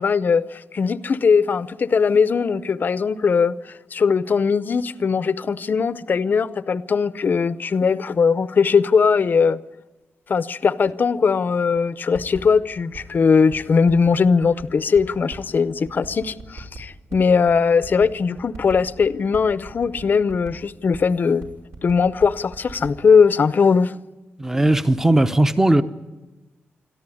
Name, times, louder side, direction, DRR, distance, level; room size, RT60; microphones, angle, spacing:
voice 1, 0.0-3.5 3.9-9.6 10.3-21.5 21.8-23.9, left 5 dB, 45° left, 0.7 m, -19 dB
sound 1, 11.7-11.8 12.1-13.2 13.5-15.5 15.8-18.0 18.4-20.6 20.9-21.0 21.3-22.9, right 3 dB, 75° right, 5.4 m, -38 dB
voice 2, 24.4-25.8, right 1 dB, 10° right, 0.8 m, -17 dB
23.0 x 13.5 x 9.9 m
wide cardioid pair, 125°, 4 cm